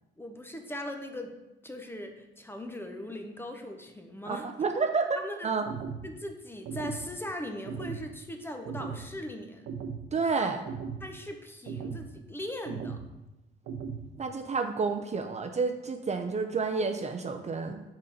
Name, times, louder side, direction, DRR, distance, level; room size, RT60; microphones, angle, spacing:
voice 1, 0.2-1.3 1.6-4.5 5.2-5.5 6.0-9.7 10.3-10.5 11.0-13.0, left 1 dB, 10° left, 4 dB, 0.8 m, -39 dB
voice 2, 4.2-5.6 10.1-10.6 14.2-17.8, right 4 dB, 35° right, 5 dB, 0.5 m, -30 dB
sound 1, 5.7-6.1 6.7-7.1 7.7-8.1 8.7-9.1 9.7-10.1 10.7-11.1 11.7-12.1 12.7-13.1 13.7-14.1, right 6 dB, 90° right, 0.6 m, -37 dB
5.3 x 4.2 x 5.2 m, 0.97 s
cardioid pair, 90°, 20 cm